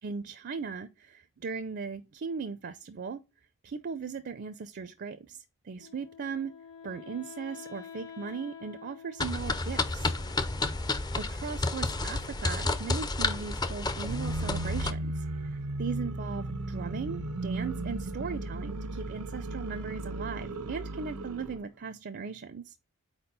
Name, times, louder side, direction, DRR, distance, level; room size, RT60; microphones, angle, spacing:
voice 1, 0.0-3.2 3.6-6.5 6.8-10.1 11.2-22.8, right 5 dB, 45° right, 0.4 m, -38 dB
Wind instrument woodwind instrument, 5.8-10.8, left 7 dB, 60° left, 1.5 m, -48 dB
sound 1, 9.2-14.9, left 2 dB, 20° left, 0.5 m, -31 dB
sound 2, 13.9-21.6, right 2 dB, 90° right, 0.8 m, -35 dB
4.4 x 4.4 x 5.3 m
head